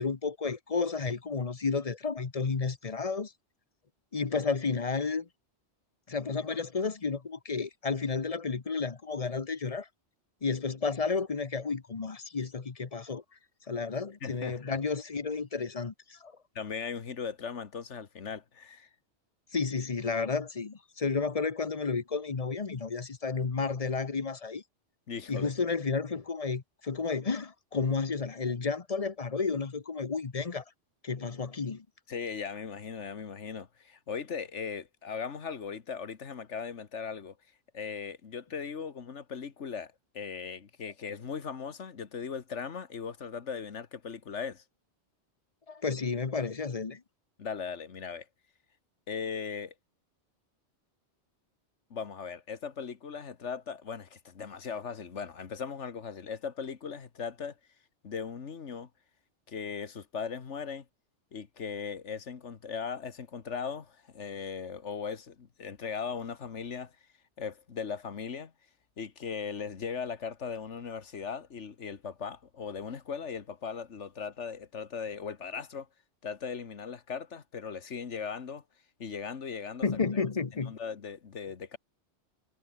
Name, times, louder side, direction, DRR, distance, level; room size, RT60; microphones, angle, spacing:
voice 1, 0.0-3.3 4.1-5.3 6.1-9.9 10.4-13.2 13.7-16.3 19.5-24.6 25.3-30.6 31.0-31.8 45.7-47.0 79.8-80.7, left 4 dB, 35° left, 1.0 m, -32 dB
voice 2, 14.2-14.8 16.6-18.9 25.1-25.5 32.1-37.4 37.7-44.6 47.4-48.3 49.1-49.7 51.9-57.6 58.0-58.9 59.5-60.9 61.3-66.9 67.4-68.5 69.0-75.9 76.2-78.6 79.0-79.9 80.7-81.8, left 6 dB, 80° left, 1.8 m, -38 dB
omnidirectional pair, 1.2 m